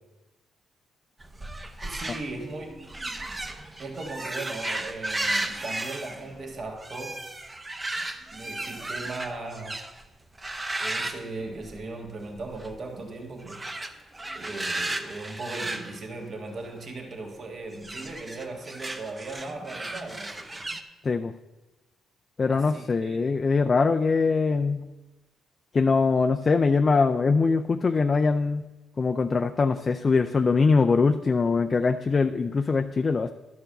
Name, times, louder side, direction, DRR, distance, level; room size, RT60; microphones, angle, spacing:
sound 1, 1.2-10.0 10.4-12.1 12.4-12.8 13.4-16.8 17.7-20.8, right 2 dB, 20° right, 0.7 m, -34 dB
voice 1, 1.8-2.8 3.8-7.2 8.3-9.8 10.8-13.6 13.9-20.6 22.5-23.2, right 3 dB, 45° right, 2 dB, 1.6 m, -38 dB
voice 2, 22.4-24.9 25.7-28.6 29.0-33.3, left 4 dB, 35° left, 6 dB, 0.4 m, -22 dB
11.5 x 4.5 x 6.6 m, 1.1 s
cardioid pair, 90°, 0 cm